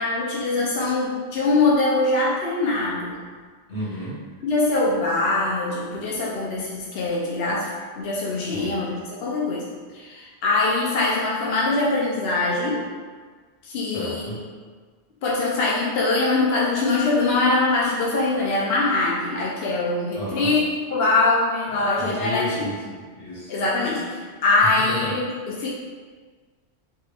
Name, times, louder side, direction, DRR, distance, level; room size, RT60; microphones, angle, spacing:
voice 1, 0.0-3.2 4.4-7.7 8.0-9.6 9.9-12.8 13.6-14.4 15.2-22.7 23.5-25.7, left 3 dB, 70° left, -5 dB, 0.8 m, -23 dB
voice 2, 3.7-4.2 8.5-8.7 13.8-14.4 20.1-20.5 21.7-23.6 24.9-25.1, left 1 dB, 90° left, -8 dB, 1.8 m, -32 dB
3.7 x 3.4 x 3.3 m, 1.5 s
omnidirectional pair, 1.1 m